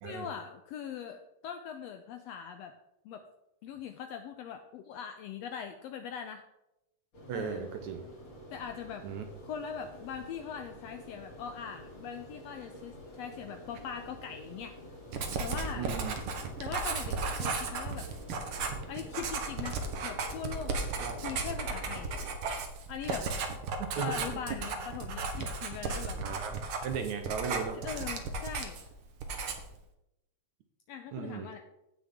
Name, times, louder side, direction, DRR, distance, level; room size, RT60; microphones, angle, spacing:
voice 1, 0.0-2.7 3.0-3.2 3.6-6.4 7.3-7.7 8.5-9.1 9.5-14.7 15.4-15.9 16.6-18.1 18.9-20.9 21.2-22.1 22.9-23.3 24.0-26.2 27.8-28.9 30.9-31.6, left 8 dB, 75° left, 7 dB, 1.6 m, -41 dB
sound 1, 7.1-22.3, equal, 40° left, 3.7 m, -49 dB
voice 2, 7.3-8.1 9.0-9.2 15.8-16.1 21.0-21.2 24.0-24.4 26.2-27.8 31.1-31.5, right 6 dB, 75° right, 5 dB, 2.2 m, -36 dB
Writing, 15.1-28.9 29.2-29.8, right 4 dB, 60° right, 1.7 m, -35 dB
16.0 x 6.2 x 3.6 m, 0.87 s
omnidirectional pair, 3.4 m